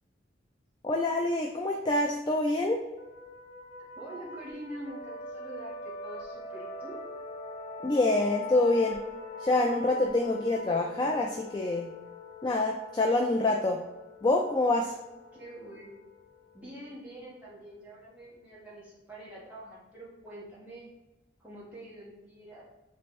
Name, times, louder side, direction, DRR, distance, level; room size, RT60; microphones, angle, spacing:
voice 1, 0.8-2.8 7.8-9.0 9.4-11.9 12.4-13.8 14.2-15.0, left 2 dB, 25° left, 1 dB, 0.3 m, -26 dB
sound 1, 3.0-18.3, left 3 dB, 80° left, 0.8 m, -43 dB
voice 2, 4.0-7.0 15.3-16.0 16.5-20.9 21.4-22.7, right 1 dB, 10° right, -8 dB, 1.4 m, -45 dB
3.4 x 3.1 x 4.3 m, 1.0 s
head